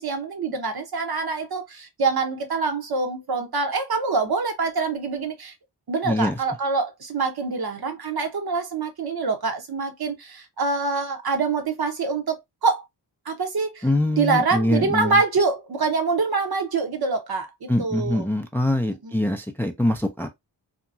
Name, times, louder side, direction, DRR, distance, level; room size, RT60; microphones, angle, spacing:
voice 1, 0.0-5.5 5.9-12.8 13.2-13.9 14.2-18.3 19.0-19.1, right 4 dB, 55° right, 0.9 m, -25 dB
voice 2, 6.0-6.4 13.8-15.2 17.7-20.3, left 1 dB, 5° left, 0.4 m, -23 dB
2.9 x 2.2 x 2.5 m
cardioid pair, 50°, 45 cm